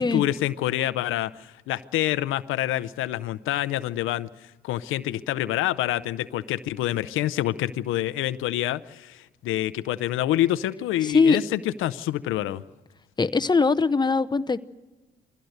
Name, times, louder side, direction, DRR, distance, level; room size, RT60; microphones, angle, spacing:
voice 1, 0.0-4.3 4.6-12.6, left 13 dB, 90° left, 14 dB, 0.6 m, -27 dB
voice 2, 11.0-11.4 13.2-14.6, left 4 dB, 20° left, 11 dB, 0.7 m, -21 dB
22.0 x 16.0 x 8.0 m, 1.2 s
cardioid pair, 90°, 20 cm